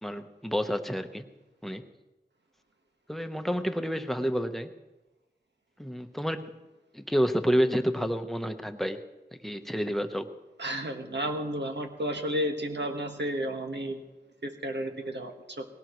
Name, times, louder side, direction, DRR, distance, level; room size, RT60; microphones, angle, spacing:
voice 1, 0.0-1.3 1.6-1.8 3.1-4.7 5.8-6.6 6.9-9.0 9.3-10.3, equal, ahead, 7 dB, 1.0 m, -29 dB
voice 2, 10.6-14.0 14.4-15.7, equal, 80° right, 4 dB, 1.5 m, -32 dB
19.5 x 17.5 x 3.1 m, 1.1 s
wide cardioid pair, 55°, 18 cm